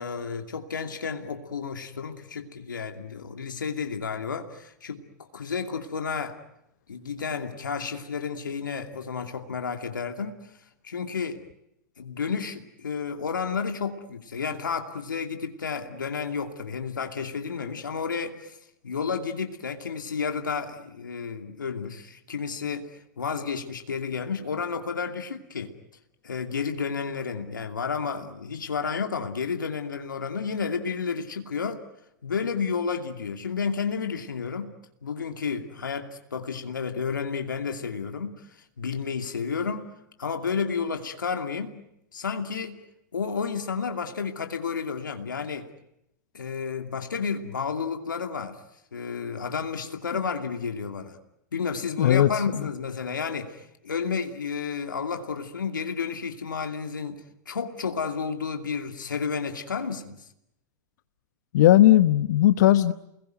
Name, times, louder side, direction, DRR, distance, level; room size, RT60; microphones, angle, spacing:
voice 1, 0.0-5.0 5.3-6.4 6.9-10.4 10.8-11.4 12.0-18.6 18.8-22.9 23.2-25.7 26.2-31.8 32.2-34.7 35.0-38.5 38.8-39.8 40.2-41.8 42.1-42.8 43.1-45.7 46.3-48.6 48.9-51.2 51.5-60.2, left 5 dB, 85° left, 2.6 m, -31 dB
voice 2, 52.0-52.7 61.5-62.9, left 13 dB, 65° left, 1.0 m, -18 dB
29.5 x 21.0 x 9.2 m
hypercardioid pair, 110°, 10 cm